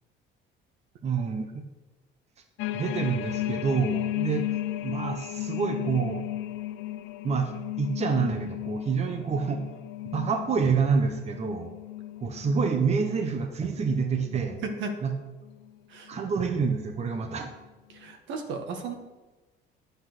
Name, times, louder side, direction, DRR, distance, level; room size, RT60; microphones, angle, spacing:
voice 1, 1.0-1.6 2.7-6.3 7.2-9.7 10.0-11.7 12.2-14.6 15.0-15.1 16.1-17.5, right 5 dB, 35° right, 5 dB, 1.1 m, -27 dB
sound 1, 2.6-14.9 15.4-15.7 16.1-16.9 17.5-17.6, left 14 dB, 80° left, 0.5 m, -35 dB
voice 2, 14.6-14.9 15.9-16.1 17.9-18.9, right 4 dB, 70° right, 4 dB, 1.9 m, -34 dB
10.5 x 8.1 x 6.3 m, 1.2 s
cardioid pair, 130°, 20 cm